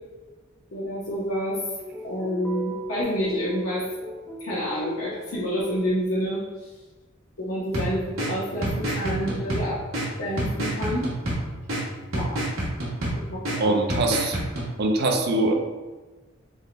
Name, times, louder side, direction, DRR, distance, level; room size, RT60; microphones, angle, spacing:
voice 1, 0.7-1.6 2.0-3.8 4.4-6.4 7.4-9.8 10.2-11.0 12.1-12.4 13.3-13.7, equal, 90° left, -9 dB, 0.8 m, -28 dB
sound 1, 1.8-6.0, equal, 10° left, 0.5 m, -38 dB
sound 2, 7.7-14.7, right 1 dB, 90° right, 1.2 m, -29 dB
voice 2, 13.6-14.4 14.8-15.5, right 2 dB, 55° right, 3 dB, 0.5 m, -22 dB
3.6 x 2.2 x 3.9 m, 1.2 s
head